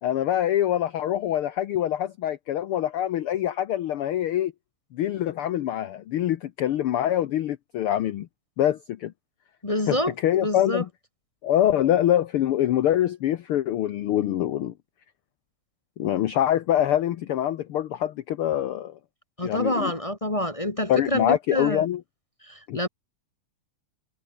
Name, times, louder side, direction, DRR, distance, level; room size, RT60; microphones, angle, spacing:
voice 1, 0.0-4.5 4.9-8.3 8.6-9.1 9.9-10.0 10.2-10.9 11.4-14.7 16.0-19.0 19.4-19.9 20.9-22.0 22.7-22.8, left 11 dB, 70° left, 1.3 m, -24 dB
voice 2, 9.6-10.8 19.4-21.9 22.4-22.9, left 1 dB, 20° left, 0.8 m, -27 dB
omnidirectional pair, 3.5 m